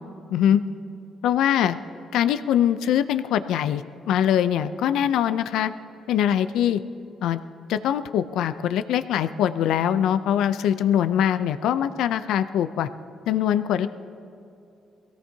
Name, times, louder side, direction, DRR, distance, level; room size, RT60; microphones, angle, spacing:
voice 1, 0.3-0.6 1.2-1.8 2.1-5.7 6.1-6.8 7.2-7.4 7.7-12.9 13.3-13.9, left 10 dB, 85° left, 12 dB, 0.5 m, -22 dB
23.0 x 17.5 x 2.8 m, 2.7 s
cardioid pair, 90°, 0 cm